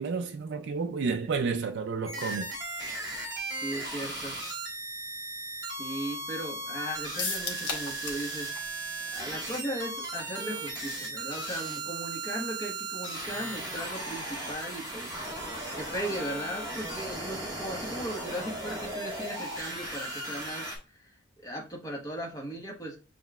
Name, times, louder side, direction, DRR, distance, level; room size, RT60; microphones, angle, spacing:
voice 1, 0.0-2.6, right 4 dB, 60° right, 0.3 m, -31 dB
sound 1, 2.1-20.8, right 2 dB, 20° right, 1.5 m, -37 dB
voice 2, 3.6-4.4 5.8-8.5 9.1-15.1 15.4-20.7 21.4-23.0, right 1 dB, 20° left, 1.2 m, -37 dB
sound 2, 7.2-8.3 8.6-8.7 9.0-9.1, left 5 dB, 70° left, 1.1 m, -34 dB
7.1 x 3.1 x 2.3 m
head